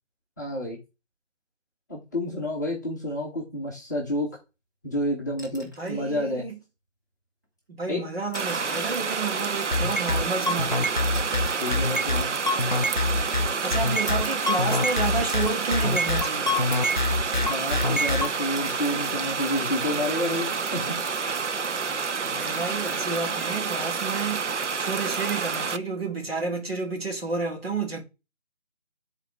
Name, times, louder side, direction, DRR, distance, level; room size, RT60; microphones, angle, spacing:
voice 1, 0.4-0.8 1.9-4.3 4.8-6.4 7.9-8.1 11.5-12.3 17.4-21.0, left 1 dB, 15° left, 1.1 m, -29 dB
sound 1, 5.4-6.0 7.4-7.6 8.2-9.0 10.2-13.2 14.1-14.9 15.3-15.7 16.1-16.2 16.7-17.1 17.5-18.1 18.6-18.9 20.3-20.6, equal, 15° right, 0.9 m, -46 dB
voice 2, 5.8-6.5 7.7-11.4 13.6-16.6 21.8-28.0, right 3 dB, 55° right, 2.5 m, -31 dB
sound 2, 8.3-25.8, right 5 dB, 75° right, 0.7 m, -29 dB
sound 3, 9.7-18.3, left 2 dB, 40° left, 0.4 m, -25 dB
10.5 x 4.1 x 3.5 m
figure-of-eight pair, 155°, 36 cm